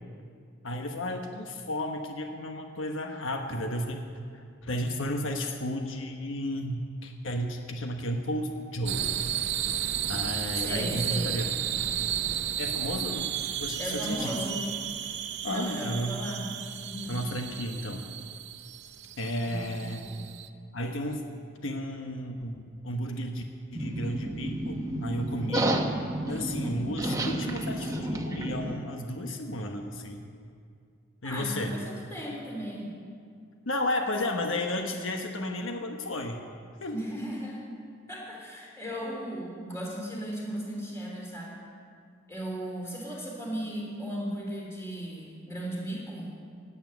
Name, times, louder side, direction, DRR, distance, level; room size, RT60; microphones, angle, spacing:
voice 1, 0.6-4.1 4.6-9.1 10.1-12.1 12.6-14.3 15.4-16.2 17.1-18.1 19.2-20.1 20.7-21.3 21.6-23.4 23.7-25.8 26.3-30.2 31.2-31.7 33.7-36.4 36.8-37.0, left 1 dB, 80° left, 3 dB, 1.2 m, -33 dB
sound 1, 8.9-20.5, right 10 dB, 55° right, 0.6 m, -33 dB
voice 2, 10.6-11.4 13.8-14.6 15.5-16.5 16.7-17.2 19.4-20.2 31.2-33.0 36.9-37.6 38.1-41.6 42.3-46.3, equal, 15° left, -3 dB, 3.8 m, -36 dB
sound 2, 23.7-28.8, right 1 dB, 15° right, 1.0 m, -31 dB
16.5 x 8.6 x 9.3 m, 2.3 s
head